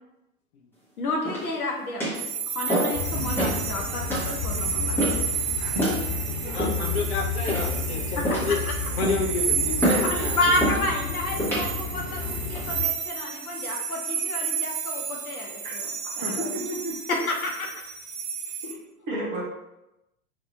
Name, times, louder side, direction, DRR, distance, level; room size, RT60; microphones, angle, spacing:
voice 1, 1.0-5.0 8.2-8.6 10.0-16.5 17.1-17.7 19.1-19.4, left 2 dB, 70° left, 0 dB, 0.9 m, -30 dB
sound 1, 1.2-1.6 2.0-2.2 2.7-3.0 3.4-3.6 4.1-4.3 5.0-5.3 5.8-6.0 6.6-7.0 7.5-7.8 8.2-8.6 9.0-9.3 9.8-10.1 10.6-10.8 11.4-11.7 12.3-12.6, right 1 dB, 5° left, 0.9 m, -26 dB
sound 2, 2.1-18.7, right 7 dB, 60° right, 0.7 m, -32 dB
sound 3, 2.9-12.8, left 4 dB, 30° left, 1.0 m, -32 dB
voice 2, 5.6-6.5 15.6-15.7 16.2-16.9 18.6-18.8 19.1-19.4, right 1 dB, 20° right, -4 dB, 0.4 m, -33 dB
voice 3, 6.3-8.6 9.0-10.6, left 4 dB, 45° left, 3 dB, 0.6 m, -30 dB
2.7 x 2.4 x 3.7 m, 0.91 s
figure-of-eight pair, 95°, 45 cm